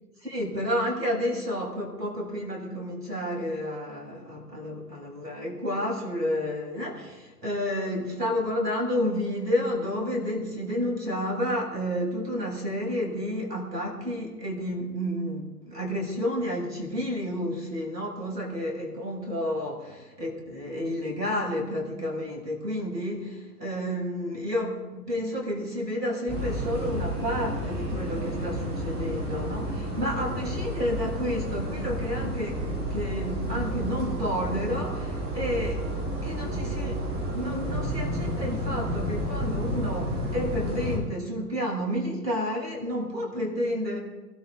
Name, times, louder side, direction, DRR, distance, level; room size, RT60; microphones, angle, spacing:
voice 1, 0.2-35.8 36.2-44.0, equal, 90° right, -1 dB, 7.4 m, -30 dB
sound 1, 26.3-41.0, equal, 20° right, 6.5 m, -31 dB
25.0 x 12.5 x 4.1 m, 1.1 s
figure-of-eight pair, 115°, 47 cm